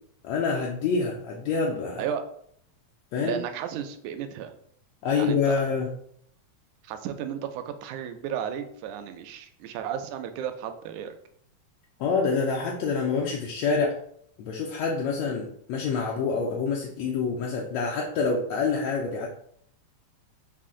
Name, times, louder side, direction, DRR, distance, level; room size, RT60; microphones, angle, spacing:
voice 1, 0.2-2.0 3.1-3.4 5.0-5.9 12.0-14.0 14.4-19.3, left 5 dB, 80° left, -2 dB, 1.6 m, -26 dB
voice 2, 3.2-4.5 5.2-5.6 6.8-11.2, right 9 dB, 85° right, 8 dB, 1.9 m, -33 dB
5.7 x 2.2 x 3.7 m, 0.65 s
omnidirectional pair, 3.4 m